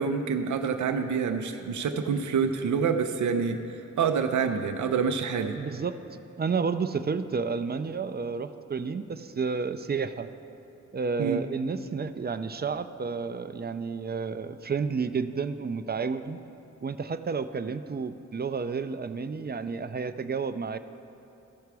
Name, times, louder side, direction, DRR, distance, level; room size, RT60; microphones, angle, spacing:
voice 1, 0.0-3.6 4.0-5.6 11.2-11.4, right 6 dB, 80° right, 6 dB, 0.5 m, -27 dB
voice 2, 5.5-5.9 6.4-10.3 10.9-16.4 16.8-20.8, right 5 dB, 35° right, 11 dB, 0.4 m, -31 dB
14.0 x 5.7 x 4.7 m, 2.9 s
cardioid pair, 50°, 29 cm